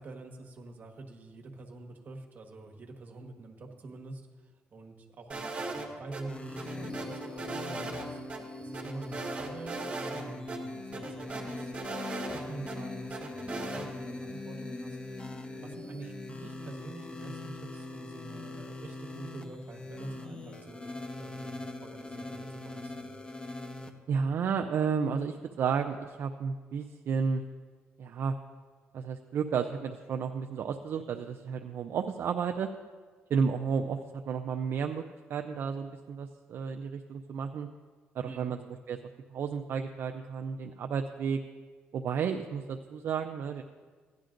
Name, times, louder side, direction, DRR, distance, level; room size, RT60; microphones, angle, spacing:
voice 1, 0.0-8.2 8.6-15.2 15.6-23.1 38.3-38.5, right 2 dB, 45° right, 2 dB, 1.5 m, -46 dB
sound 1, 5.3-6.2 6.6-8.0 8.3-8.4 8.7-10.2 10.5-10.6 10.9-12.8 13.1-13.9, right 3 dB, 30° right, 1.7 m, -38 dB
sound 2, 6.3-23.9, left 2 dB, 25° left, 0.9 m, -41 dB
voice 2, 24.1-27.4 28.0-28.4 28.9-32.7 33.3-35.0 35.3-37.7 38.1-38.6 38.9-41.4 41.9-43.6, right 6 dB, 65° right, 5 dB, 0.5 m, -32 dB
16.5 x 10.5 x 2.6 m, 1.5 s
cardioid pair, 110°, 4 cm